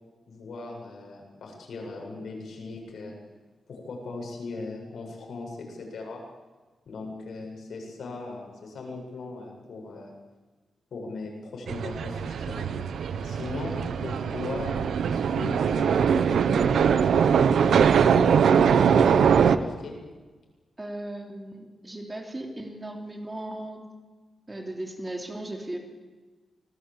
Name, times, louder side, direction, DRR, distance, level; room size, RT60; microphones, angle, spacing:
voice 1, 0.3-3.2 3.7-6.2 6.9-10.1 10.9-12.7 13.2-18.0 18.5-19.9, left 3 dB, 70° left, 0 dB, 7.9 m, -38 dB
sound 1, 11.7-19.6, right 7 dB, 85° right, 1.2 m, -22 dB
voice 2, 13.6-13.9 20.8-23.9 24.5-25.8, right 1 dB, 15° right, 2 dB, 3.2 m, -37 dB
26.5 x 19.0 x 8.8 m, 1.3 s
wide cardioid pair, 165°, 0 cm